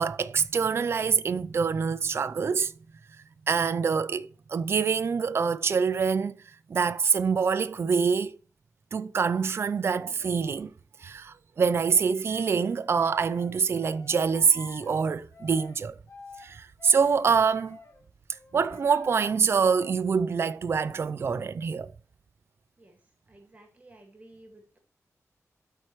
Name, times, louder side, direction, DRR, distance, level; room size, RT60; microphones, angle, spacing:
voice 1, 0.0-2.7 3.5-6.4 6.7-8.4 8.9-10.7 11.0-16.0 16.4-17.8 18.5-21.9, right 5 dB, 45° right, 0.4 m, -25 dB
sound 1, 10.2-10.5 11.9-18.0 18.3-19.3, left 4 dB, 60° left, 1.7 m, -50 dB
voice 2, 23.3-24.8, right 1 dB, 25° right, 1.8 m, -53 dB
13.0 x 4.4 x 3.0 m
wide cardioid pair, 175°, 6 cm